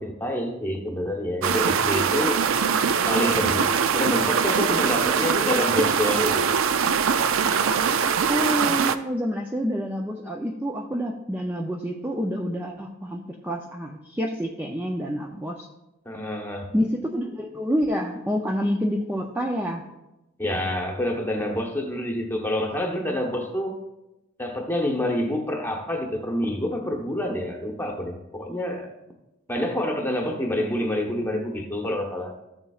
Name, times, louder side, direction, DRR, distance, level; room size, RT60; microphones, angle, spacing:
voice 1, 0.0-2.4 3.1-6.5 16.0-16.7 20.4-23.8 24.4-28.9 29.5-32.3, left 1 dB, 10° left, 2 dB, 1.0 m, -27 dB
sound 1, 1.4-9.0, right 6 dB, 70° right, 0.4 m, -22 dB
voice 2, 8.3-15.7 16.7-19.8, equal, 10° right, 0 dB, 0.4 m, -28 dB
13.5 x 7.1 x 2.4 m, 0.97 s
head